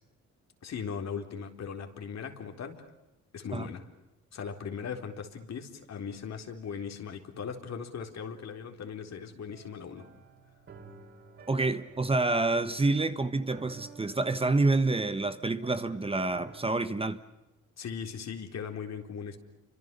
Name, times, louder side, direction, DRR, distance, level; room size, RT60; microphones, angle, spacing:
voice 1, 0.6-2.9 3.3-3.9 4.3-10.1 17.8-19.4, left 6 dB, 60° left, 4.0 m, -39 dB
sound 1, 9.5-16.9, right 4 dB, 45° right, 6.8 m, -53 dB
voice 2, 11.5-17.2, right 2 dB, 20° right, 1.3 m, -28 dB
29.0 x 25.5 x 6.9 m
cardioid pair, 90°, 30 cm